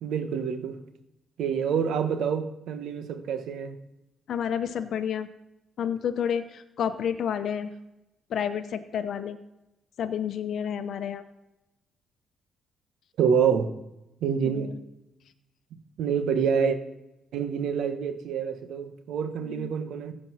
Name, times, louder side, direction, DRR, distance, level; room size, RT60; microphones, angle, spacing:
voice 1, 0.0-0.8 1.4-3.8 13.2-13.7 14.2-14.7 16.0-16.8 17.3-20.1, right 7 dB, 75° right, 1.2 m, -27 dB
voice 2, 4.3-5.3 5.8-7.7 8.3-9.4 10.0-11.2 14.5-14.8 19.4-19.7, left 8 dB, 65° left, 0.7 m, -30 dB
15.0 x 5.3 x 6.2 m
cardioid pair, 90°, 0 cm